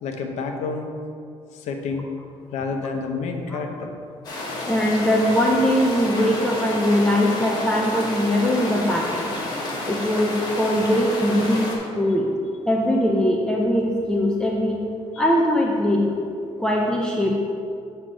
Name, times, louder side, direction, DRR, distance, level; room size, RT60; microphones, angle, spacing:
voice 1, 0.0-0.9 1.5-2.1 2.5-4.0, left 4 dB, 75° left, 3 dB, 0.8 m, -29 dB
sound 1, 4.2-11.8, left 1 dB, 35° left, 1.3 m, -30 dB
voice 2, 4.6-9.3 9.9-11.7 12.0-12.3 12.7-14.8 15.2-16.2 16.6-17.3, left 1 dB, 5° left, -2 dB, 0.5 m, -21 dB
7.6 x 3.3 x 6.2 m, 2.4 s
cardioid pair, 170°, 12 cm